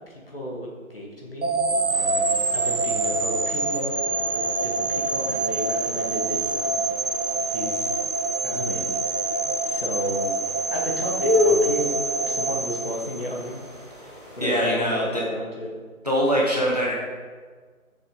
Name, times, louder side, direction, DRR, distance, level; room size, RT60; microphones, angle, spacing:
voice 1, 0.1-6.9 7.5-8.0 8.4-9.4 9.6-10.3 10.7-13.6 14.3-15.7, left 1 dB, 40° left, -3 dB, 2.1 m, -34 dB
sound 1, 1.4-13.6, right 3 dB, 80° right, 1.1 m, -26 dB
sound 2, 1.9-14.7, left 2 dB, 20° left, 1.7 m, -32 dB
voice 2, 14.4-15.2 16.0-16.9, equal, 30° right, -4 dB, 1.3 m, -22 dB
12.0 x 7.0 x 4.0 m, 1.5 s
figure-of-eight pair, 180°, 43 cm